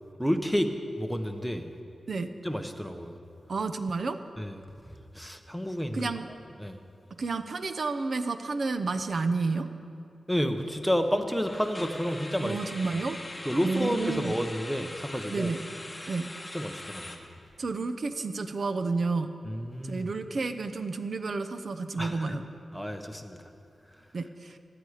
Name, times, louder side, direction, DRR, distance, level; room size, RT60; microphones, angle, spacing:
voice 1, 0.2-0.7 1.0-1.6 2.4-3.2 4.4-6.1 6.6-6.8 10.3-12.6 13.4-15.5 16.5-17.2 19.4-20.1 22.0-22.4 22.7-23.4, equal, ahead, 6 dB, 1.0 m, -30 dB
voice 2, 3.5-4.2 5.9-6.3 7.1-9.7 12.4-13.2 13.6-14.4 15.3-15.6 16.1-16.3 17.6-19.3 19.8-22.5 24.1-24.6, right 3 dB, 60° right, 9 dB, 0.8 m, -30 dB
sound 1, 5.3-5.5 5.8-6.0 6.5-6.6 11.4-17.2, left 1 dB, 20° left, 1.3 m, -42 dB
16.5 x 11.0 x 5.0 m, 2.5 s
wide cardioid pair, 85°, 0 cm